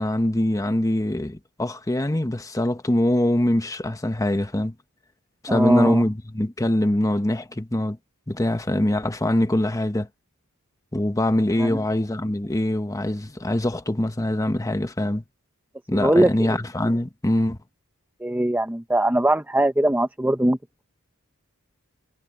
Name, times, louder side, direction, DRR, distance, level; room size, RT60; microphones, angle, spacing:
voice 1, 0.0-4.7 5.4-8.0 8.3-10.1 10.9-15.2 15.9-17.6, left 1 dB, 15° left, 1.0 m, -23 dB
voice 2, 5.5-6.0 11.6-11.8 15.9-16.6 18.2-20.8, right 1 dB, 10° right, 0.7 m, -21 dB
head